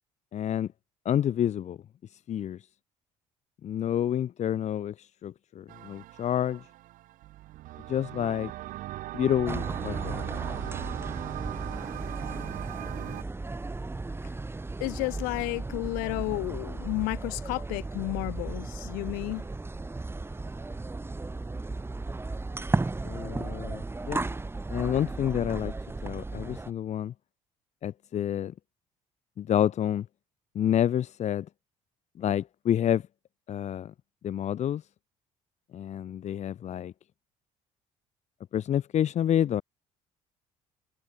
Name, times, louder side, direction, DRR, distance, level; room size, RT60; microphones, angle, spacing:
voice 1, 0.3-0.7 1.0-1.8 2.1-2.7 3.6-6.7 7.9-8.5 9.1-10.2 23.0-24.3 24.7-25.7 26.0-27.1 27.8-28.5 29.4-30.1 30.5-31.5 32.2-33.1 33.5-33.9 34.2-34.8 35.7-36.9 38.5-39.6, left 10 dB, 55° left, 1.5 m, -28 dB
sound 1, 5.7-13.2, right 16 dB, 75° right, 2.4 m, -39 dB
sound 2, 9.4-26.7, right 3 dB, 15° right, 2.3 m, -35 dB
voice 2, 14.8-19.4, left 30 dB, 90° left, 0.5 m, -32 dB
supercardioid pair, 80°, 14 cm